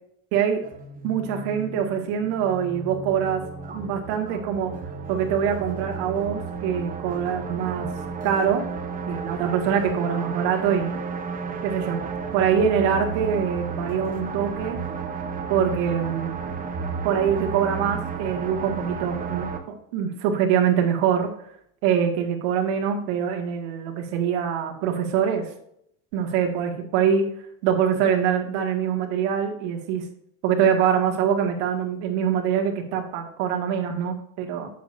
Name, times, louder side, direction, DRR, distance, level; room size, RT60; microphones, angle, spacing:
sound 1, 0.6-19.6, right 5 dB, 25° right, 1.0 m, -33 dB
voice 1, 1.0-3.4 3.7-4.7 5.1-7.9 8.2-8.6 9.1-11.0 11.6-12.0 12.3-14.8 15.5-16.4 17.0-21.3 21.8-25.5 26.1-27.3 27.6-30.0 30.4-34.7, right 8 dB, 80° right, 3 dB, 1.9 m, -24 dB
8.4 x 7.7 x 2.6 m, 0.71 s
cardioid pair, 140°, 36 cm